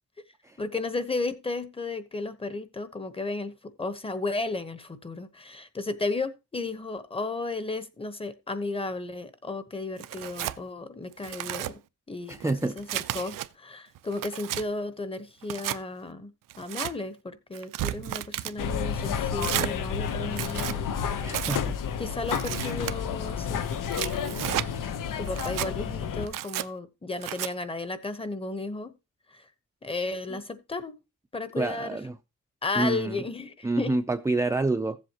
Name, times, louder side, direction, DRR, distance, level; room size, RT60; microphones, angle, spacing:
voice 1, 0.6-11.8 12.1-12.9 13.1-16.3 16.6-20.8 22.0-23.6 24.0-24.4 25.2-28.9 29.3-29.5 29.8-31.0 31.3-32.0 32.6-33.9, left 3 dB, 15° left, 1.1 m, -34 dB
Tearing, 10.0-10.6 11.1-11.7 12.3-13.5 14.0-14.6 15.4-15.8 16.5-16.9 17.5-18.6 19.4-19.7 20.3-20.8 21.3-21.6 22.3-22.9 23.7-24.7 25.3-25.7 26.3-26.7 27.2-27.5, right 13 dB, 85° right, 0.6 m, -33 dB
voice 2, 12.3-12.8 21.2-21.8 30.3-30.4 31.6-32.2 32.8-33.2 33.6-35.0, right 2 dB, 10° right, 0.4 m, -28 dB
sound 1, 18.6-26.3, left 7 dB, 80° left, 1.0 m, -31 dB
15.0 x 7.7 x 3.0 m
cardioid pair, 120°, 32 cm